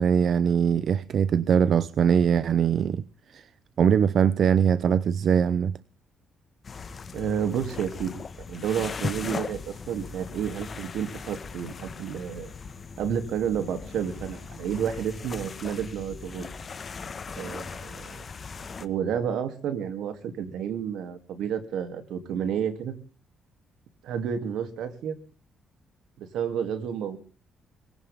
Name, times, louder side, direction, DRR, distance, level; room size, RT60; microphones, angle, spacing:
voice 1, 0.0-3.0 3.3-3.5 3.8-5.7, right 7 dB, 60° right, 0.7 m, -22 dB
sound 1, 6.6-18.9, left 5 dB, 40° left, 1.5 m, -38 dB
voice 2, 7.1-8.1 8.5-12.5 13.0-16.5 17.3-18.2 18.8-22.9 24.0-25.2 26.2-27.2, right 8 dB, 80° right, 2.9 m, -30 dB
22.5 x 17.0 x 3.7 m
cardioid pair, 90°, 0 cm